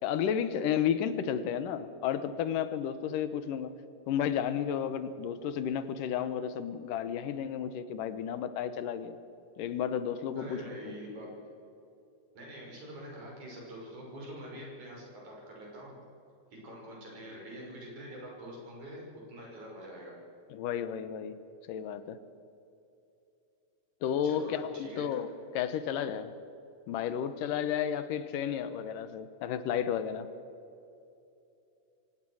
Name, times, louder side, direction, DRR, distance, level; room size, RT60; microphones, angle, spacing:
voice 1, 0.0-3.8 4.1-9.2 9.6-11.0 20.5-21.4 21.7-22.2 24.0-25.3 25.5-26.3 26.9-30.3, left 8 dB, 85° left, 12 dB, 2.7 m, -32 dB
voice 2, 10.3-11.3 12.3-16.0 16.5-20.2 24.2-25.1, equal, 65° right, -2 dB, 7.4 m, -45 dB
24.0 x 18.5 x 6.4 m, 2.7 s
omnidirectional pair, 3.7 m